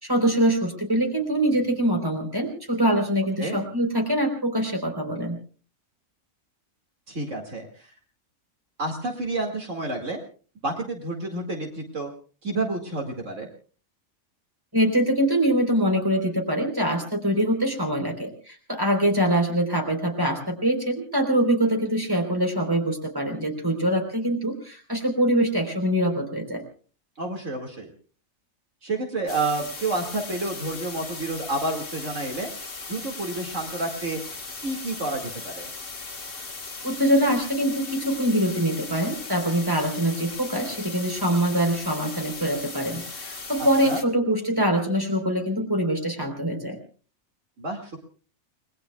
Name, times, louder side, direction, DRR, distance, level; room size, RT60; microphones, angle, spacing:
voice 1, 0.0-5.4 14.7-26.6 36.8-46.8, equal, 15° right, 3 dB, 3.9 m, -24 dB
voice 2, 7.1-7.9 8.8-10.2 10.6-12.1 12.4-13.5 27.2-27.9 28.8-32.5 32.9-34.2 34.6-35.7 43.6-44.0 47.6-48.0, right 2 dB, 60° right, 2 dB, 2.5 m, -30 dB
sound 1, 29.3-44.0, left 3 dB, 45° left, 1.9 m, -38 dB
30.0 x 20.5 x 2.3 m, 0.39 s
omnidirectional pair, 1.4 m